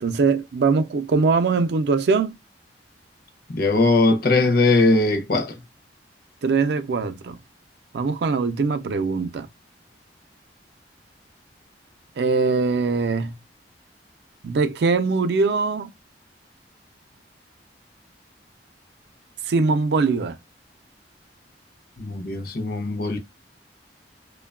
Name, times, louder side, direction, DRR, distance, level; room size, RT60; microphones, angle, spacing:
voice 1, 0.0-2.4 6.4-7.4 7.9-9.5 12.2-13.3 14.4-15.9 19.5-20.4, right 4 dB, 65° right, 0.4 m, -22 dB
voice 2, 3.5-5.6 22.0-23.2, left 2 dB, 55° left, 0.6 m, -20 dB
2.8 x 2.2 x 2.2 m
head